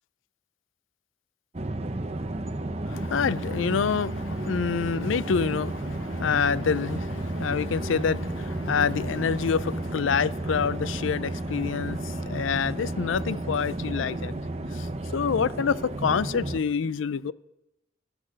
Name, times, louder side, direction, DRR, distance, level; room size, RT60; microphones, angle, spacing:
sound 1, 1.5-16.6, right 1 dB, 30° right, 0.7 m, -32 dB
voice 1, 2.8-14.3 14.7-17.3, left 6 dB, 85° left, 0.4 m, -27 dB
13.0 x 12.5 x 6.3 m
head